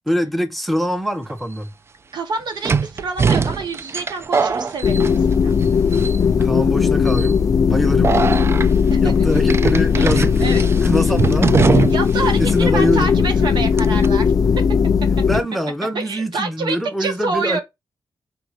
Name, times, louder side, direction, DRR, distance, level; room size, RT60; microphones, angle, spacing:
voice 1, 0.1-1.7 6.4-7.4 7.7-8.2 9.0-10.3 10.8-11.7 12.4-13.1 15.3-17.6, equal, ahead, 0.7 m, -23 dB
sound 1, 1.3-1.4 2.6-5.6 5.9-6.4 7.1-7.3 8.0-8.7 9.5-12.2 12.5-12.6 13.8-14.1, right 5 dB, 35° right, 0.3 m, -21 dB
voice 2, 2.1-5.2 5.4-5.5 8.9-9.1 9.9-10.6 11.9-14.5 15.9-17.6, right 4 dB, 75° right, 1.3 m, -27 dB
sound 2, 4.8-15.4, left 6 dB, 50° left, 0.4 m, -17 dB
4.0 x 2.7 x 4.6 m
wide cardioid pair, 105°, 8 cm